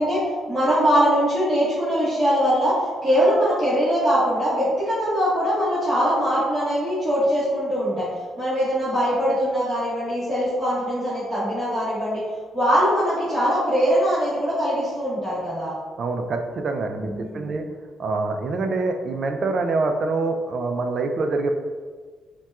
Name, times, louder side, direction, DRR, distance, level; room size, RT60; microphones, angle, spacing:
voice 1, 0.0-8.1 8.4-12.2 12.5-15.7 17.0-17.5, equal, 10° right, -13 dB, 1.2 m, -22 dB
voice 2, 16.0-17.7 18.0-21.5, right 3 dB, 55° right, 5 dB, 0.3 m, -25 dB
4.0 x 2.2 x 2.3 m, 1.5 s
cardioid pair, 90°, 0 cm